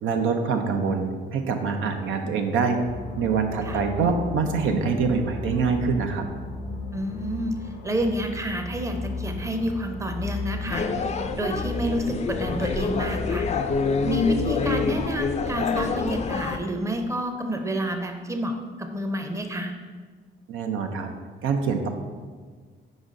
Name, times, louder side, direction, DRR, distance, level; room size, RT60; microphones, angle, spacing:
voice 1, 0.0-2.8 3.2-6.2 20.5-21.1 21.4-21.9, right 5 dB, 85° right, 5 dB, 0.6 m, -25 dB
sound 1, 2.8-15.0, left 3 dB, 70° left, 0.7 m, -35 dB
voice 2, 6.9-10.9 11.4-13.5 14.0-19.7, equal, 15° right, 5 dB, 0.6 m, -29 dB
sound 2, 10.7-16.6, left 5 dB, 35° left, 0.4 m, -27 dB
4.8 x 4.0 x 5.1 m, 1.5 s
cardioid pair, 90°, 20 cm